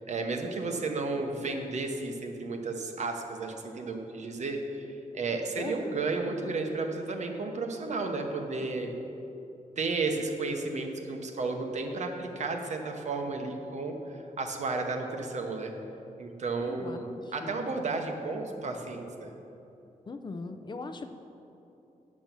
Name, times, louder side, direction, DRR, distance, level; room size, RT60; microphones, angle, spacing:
voice 1, 0.1-4.9 5.1-9.0 9.8-15.7 16.2-19.3, right 3 dB, 55° right, 3 dB, 1.0 m, -33 dB
voice 2, 5.6-6.1 16.6-17.6 20.1-21.1, left 3 dB, 35° left, 8 dB, 0.5 m, -40 dB
8.4 x 6.9 x 6.0 m, 2.9 s
wide cardioid pair, 155°, 14 cm